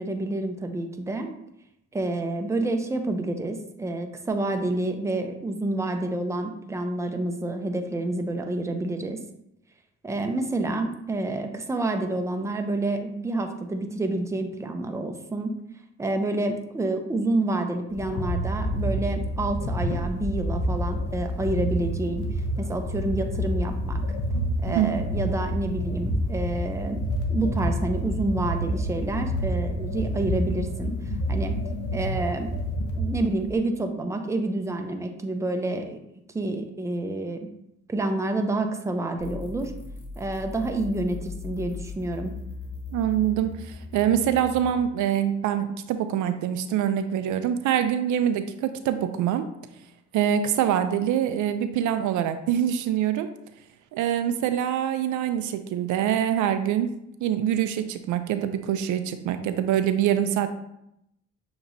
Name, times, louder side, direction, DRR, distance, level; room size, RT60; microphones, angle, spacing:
voice 1, 0.0-1.3 1.9-9.2 10.0-15.6 16.0-22.2 22.6-24.0 24.6-27.0 27.3-31.0 31.3-31.5 31.9-32.6 33.0-36.0 36.3-37.5 37.9-39.7 40.2-42.3, right 2 dB, 10° right, 5 dB, 0.5 m, -28 dB
sound 1, 17.9-33.6, equal, 80° left, 0.8 m, -28 dB
sound 2, 39.2-44.7, left 4 dB, 50° left, 1.3 m, -38 dB
voice 2, 42.9-49.5 50.1-53.3 53.9-56.9 57.2-60.5, right 10 dB, 75° right, 9 dB, 0.5 m, -25 dB
6.6 x 2.9 x 2.6 m, 0.80 s
cardioid pair, 90°, 30 cm